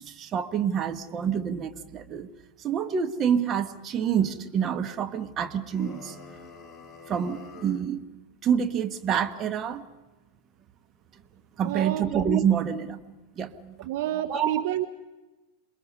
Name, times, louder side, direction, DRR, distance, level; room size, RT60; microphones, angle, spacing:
voice 1, 0.0-2.3 2.6-6.3 7.1-8.0 8.4-9.8 11.6-13.9 14.3-14.6, right 8 dB, 30° right, 8 dB, 1.3 m, -27 dB
sound 1, 5.7-7.9, left 5 dB, 20° left, 2.3 m, -47 dB
voice 2, 11.6-12.0 13.8-14.9, right 13 dB, 50° right, 8 dB, 0.9 m, -29 dB
27.5 x 22.0 x 5.5 m, 1.2 s
figure-of-eight pair, 90°, 0 cm